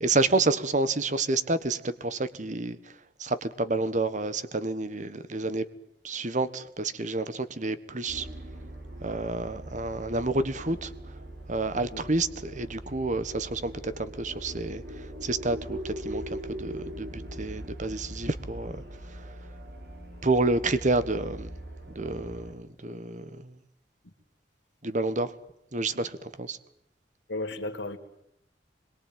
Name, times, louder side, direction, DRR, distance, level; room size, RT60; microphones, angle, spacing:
voice 1, 0.0-2.9 3.2-5.7 6.0-8.3 9.0-10.9 11.5-18.8 19.1-19.3 20.2-21.5 21.9-23.5 24.8-25.3 25.7-26.6, right 2 dB, 40° right, 1.4 m, -29 dB
sound 1, 8.1-22.5, right 1 dB, 65° right, 5.7 m, -41 dB
voice 2, 27.3-28.0, left 2 dB, 75° left, 2.6 m, -34 dB
25.5 x 22.5 x 9.2 m
head